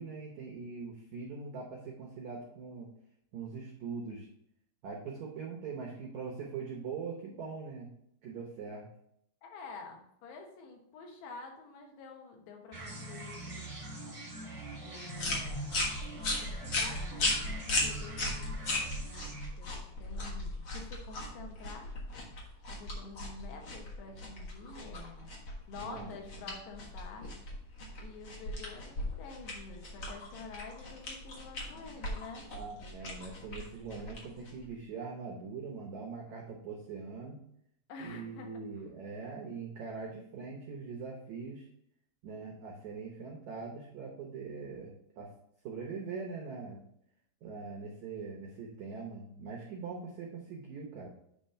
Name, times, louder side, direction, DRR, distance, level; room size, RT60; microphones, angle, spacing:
voice 1, 0.0-2.9 3.3-4.3 4.8-7.9 8.2-8.9 25.7-26.1 26.4-26.5 32.5-37.4 38.0-41.7 42.2-45.3 45.6-46.8 47.4-51.1, right 5 dB, 80° right, -2 dB, 1.6 m, -42 dB
voice 2, 9.4-13.7 14.8-15.7 16.4-19.3 19.6-21.9 22.7-25.3 25.7-27.3 28.0-32.5 37.9-38.5, left 4 dB, 80° left, 2 dB, 3.3 m, -48 dB
sound 1, 12.7-19.5, right 1 dB, 40° right, 1.0 m, -43 dB
sound 2, 15.1-34.7, left 2 dB, 65° left, 1.2 m, -37 dB
8.9 x 3.2 x 5.6 m, 0.72 s
omnidirectional pair, 4.7 m